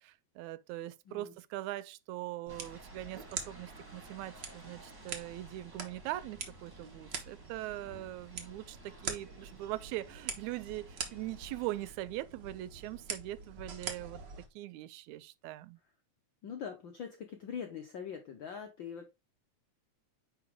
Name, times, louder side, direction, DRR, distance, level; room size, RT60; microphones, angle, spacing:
voice 1, 0.0-14.2 14.6-15.8, right 16 dB, 85° right, 1.9 m, -41 dB
sound 1, 2.5-11.9, right 2 dB, 20° right, 0.5 m, -57 dB
sound 2, 2.5-14.5, right 5 dB, 50° right, 1.5 m, -45 dB
voice 2, 16.4-19.1, left 7 dB, 75° left, 1.1 m, -43 dB
9.7 x 4.0 x 3.5 m
omnidirectional pair, 3.3 m